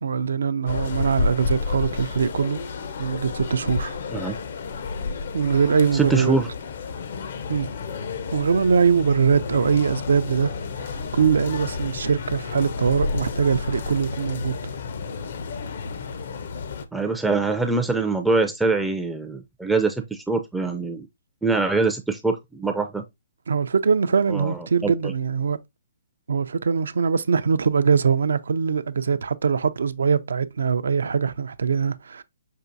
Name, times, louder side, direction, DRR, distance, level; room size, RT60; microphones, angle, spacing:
voice 1, 0.0-2.6 3.0-3.9 5.3-6.4 7.5-7.7 8.3-10.5 10.8-14.6 23.5-25.6 26.3-32.2, right 6 dB, 75° right, 0.4 m, -22 dB
sound 1, 0.7-16.8, left 4 dB, 60° left, 0.5 m, -31 dB
voice 2, 5.9-6.5 16.9-21.1 21.4-23.0 24.3-25.1, right 3 dB, 5° right, 0.4 m, -24 dB
5.5 x 2.4 x 2.5 m
hypercardioid pair, 145°, 0 cm